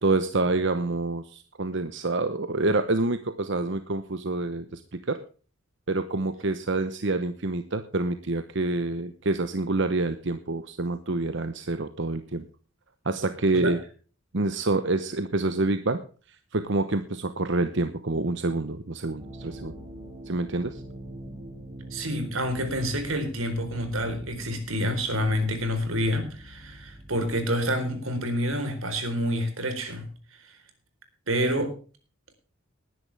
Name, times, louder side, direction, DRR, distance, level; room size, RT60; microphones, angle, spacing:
voice 1, 0.0-4.8 5.1-5.2 5.9-12.4 13.0-13.8 14.3-16.0 16.5-19.7 20.3-20.8, right 2 dB, 60° right, 10 dB, 1.0 m, -27 dB
sound 1, 19.2-27.5, right 1 dB, 25° right, 3.0 m, -43 dB
voice 2, 21.9-30.1 31.3-31.7, equal, 90° right, 8 dB, 4.2 m, -28 dB
19.5 x 10.5 x 3.5 m, 0.38 s
head